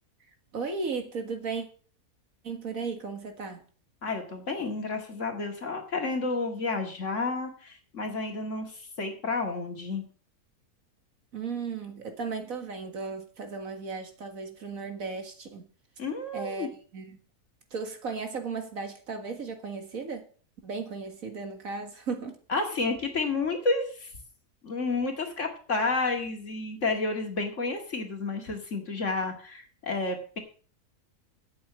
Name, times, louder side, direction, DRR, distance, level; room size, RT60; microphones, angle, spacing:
voice 1, 0.5-1.7 2.4-3.6 11.3-15.7 16.3-16.7 16.9-17.2 17.7-20.3 20.6-22.4, right 4 dB, 60° right, 5 dB, 2.1 m, -35 dB
voice 2, 4.0-10.0 16.0-16.7 22.5-24.1 24.6-30.4, left 3 dB, 50° left, 3 dB, 2.3 m, -31 dB
8.5 x 7.2 x 7.7 m, 0.42 s
omnidirectional pair, 1.6 m